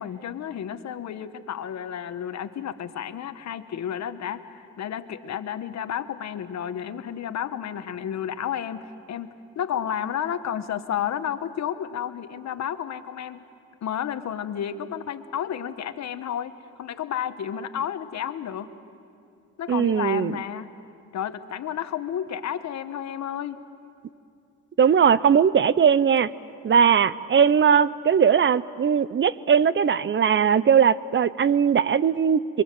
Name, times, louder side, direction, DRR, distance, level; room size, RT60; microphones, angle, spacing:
voice 1, 0.0-13.4 13.8-18.7 19.6-20.7 21.1-23.6, left 9 dB, 65° left, 10 dB, 1.2 m, -31 dB
voice 2, 19.7-20.3 24.8-26.3 26.6-32.6, right 7 dB, 40° right, 17 dB, 0.6 m, -19 dB
28.0 x 23.0 x 7.6 m, 2.5 s
cardioid pair, 90°, 30 cm